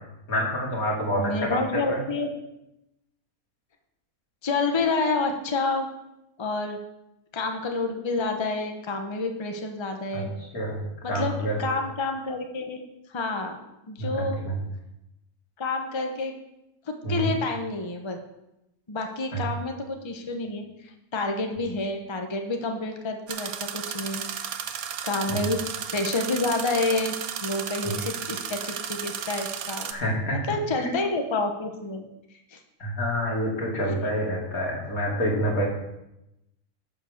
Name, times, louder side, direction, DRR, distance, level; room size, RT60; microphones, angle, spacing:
voice 1, 0.3-2.0 10.1-10.2 10.5-10.8 11.1-11.6 14.0-14.5 17.0-17.3 19.3-19.4 25.3-25.4 27.8-27.9 29.9-30.4 30.8-31.0 32.8-35.6, equal, 85° left, -3 dB, 3.1 m, -27 dB
voice 2, 1.2-2.3 4.4-5.9 6.4-6.8 7.3-10.3 11.0-12.8 13.1-13.6 13.9-14.4 15.6-16.3 16.9-18.2 18.9-20.6 21.1-24.2 25.0-25.6 25.9-27.1 27.4-29.9 30.3-32.1 32.5-32.6, left 3 dB, 20° left, 5 dB, 0.9 m, -28 dB
sound 1, 23.3-29.9, right 8 dB, 90° right, 1.2 m, -34 dB
11.0 x 5.4 x 6.5 m, 0.87 s
omnidirectional pair, 1.5 m